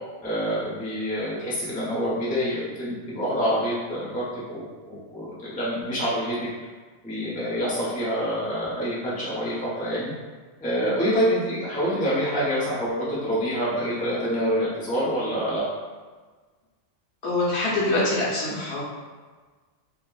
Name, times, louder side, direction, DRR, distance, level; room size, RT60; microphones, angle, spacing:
voice 1, 0.2-6.5 7.0-10.1 10.6-15.7, equal, 10° left, -8 dB, 0.5 m, -26 dB
voice 2, 17.2-18.8, left 2 dB, 65° left, -7 dB, 1.0 m, -24 dB
2.7 x 2.4 x 2.3 m, 1.4 s
omnidirectional pair, 1.2 m